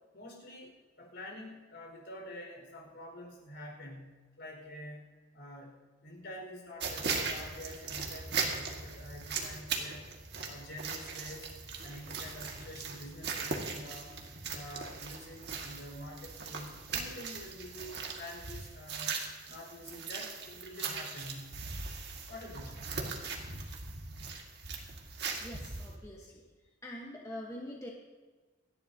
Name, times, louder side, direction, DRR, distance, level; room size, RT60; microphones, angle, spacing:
voice 1, 0.1-10.1 10.4-11.5 11.8-14.1 14.5-19.2 19.5-21.6 22.3-22.9, left 1 dB, 60° left, 0 dB, 5.0 m, -47 dB
sound 1, 6.8-25.9, right 5 dB, 55° right, 1.7 m, -39 dB
voice 2, 25.4-26.4 26.8-27.9, left 1 dB, 15° left, -2 dB, 1.2 m, -44 dB
28.0 x 11.0 x 2.8 m, 1.3 s
head